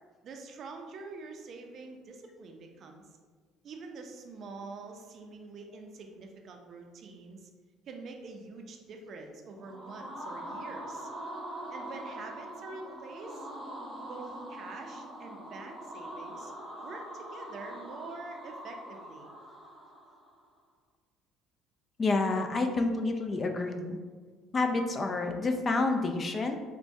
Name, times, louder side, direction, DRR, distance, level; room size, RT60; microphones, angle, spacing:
voice 1, 0.2-3.0 3.6-7.5 7.9-11.1 11.7-13.5 14.1-16.5 16.8-19.3, right 3 dB, 55° right, 3 dB, 0.5 m, -46 dB
sound 1, 9.5-20.4, right 1 dB, 25° right, 0.8 m, -43 dB
voice 2, 22.0-24.0 24.5-26.6, left 3 dB, 35° left, 5 dB, 0.4 m, -29 dB
4.4 x 2.2 x 2.6 m, 1.5 s
supercardioid pair, 85°, 0 cm